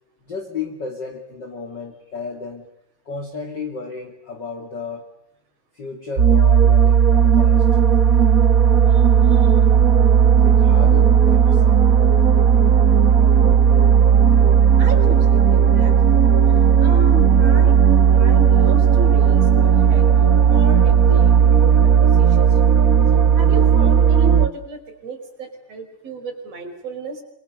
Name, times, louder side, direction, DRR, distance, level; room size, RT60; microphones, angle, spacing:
voice 1, 0.2-2.7 3.1-5.1 5.7-7.7 10.4-11.9, left 4 dB, 35° left, 3 dB, 3.1 m, -33 dB
sound 1, 6.2-24.5, right 8 dB, 85° right, 0.7 m, -14 dB
voice 2, 8.9-9.5 12.2-12.3 14.8-16.0 16.8-17.8 18.1-20.1 20.5-22.9 23.4-27.2, right 2 dB, 50° right, 6 dB, 5.8 m, -33 dB
28.0 x 25.5 x 6.8 m, 0.74 s
omnidirectional pair, 3.8 m